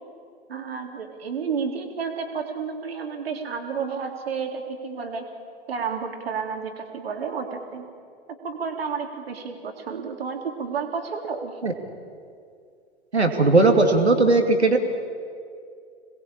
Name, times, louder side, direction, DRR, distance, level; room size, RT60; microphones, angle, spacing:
voice 1, 0.5-5.3 5.7-7.8 8.3-11.5, right 5 dB, 65° right, 4 dB, 3.4 m, -31 dB
voice 2, 13.1-14.8, right 3 dB, 85° right, 5 dB, 2.7 m, -18 dB
27.0 x 20.5 x 8.8 m, 2.4 s
figure-of-eight pair, 100°, 32 cm